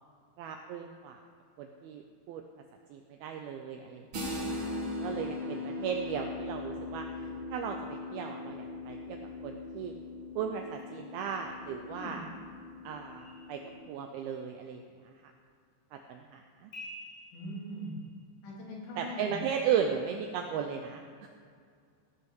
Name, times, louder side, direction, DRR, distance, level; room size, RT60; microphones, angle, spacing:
voice 1, 0.4-1.2 1.6-2.4 2.9-9.2 9.4-9.9 10.4-12.3 12.8-13.6 13.9-15.1 15.9-16.7 19.0-21.0, right 7 dB, 85° right, 4 dB, 2.2 m, -36 dB
sound 1, 4.1-13.8, left 2 dB, 70° right, 1.2 m, -40 dB
voice 2, 11.9-12.2 17.3-17.9 18.4-19.4, equal, 80° left, -4 dB, 4.9 m, -41 dB
sound 2, 13.2-14.4 16.7-18.2, left 1 dB, 60° left, 4.8 m, -49 dB
16.0 x 5.6 x 6.2 m, 2.2 s
omnidirectional pair, 5.0 m